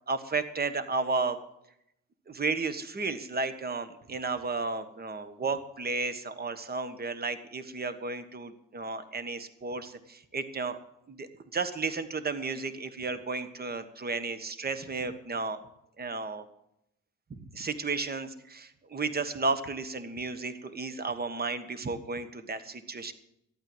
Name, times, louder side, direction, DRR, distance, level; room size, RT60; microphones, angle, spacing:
voice 1, 0.1-1.4 2.3-10.8 11.1-15.6 16.0-16.4 17.3-23.1, right 4 dB, 30° right, 11 dB, 1.5 m, -33 dB
13.0 x 9.1 x 8.0 m, 0.79 s
cardioid pair, 90°, 30 cm